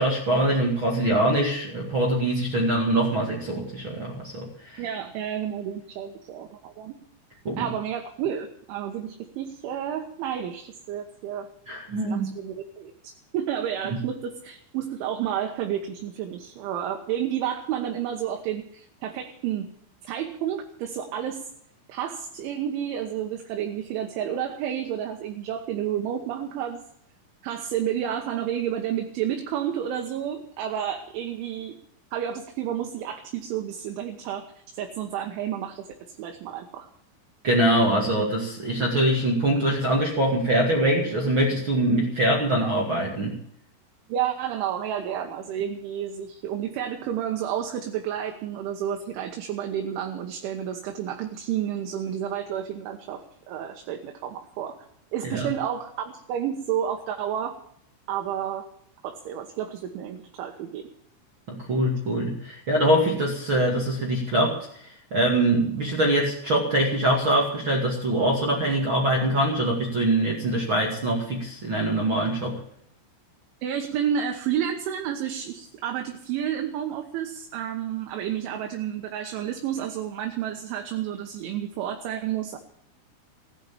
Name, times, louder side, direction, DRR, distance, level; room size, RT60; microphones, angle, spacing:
voice 1, 0.0-4.8 7.4-7.7 11.7-12.3 37.4-43.4 55.2-55.5 61.5-64.6 64.8-72.6, right 1 dB, 45° right, -2 dB, 1.7 m, -23 dB
voice 2, 4.8-6.9 7.6-11.5 12.0-19.7 20.0-21.5 21.9-26.8 27.4-31.8 32.1-34.5 34.7-36.9 44.1-54.8 55.1-57.6 58.1-58.7 59.0-60.9 73.6-82.6, right 9 dB, 75° right, 4 dB, 3.4 m, -30 dB
16.0 x 9.5 x 8.5 m, 0.68 s
omnidirectional pair, 5.9 m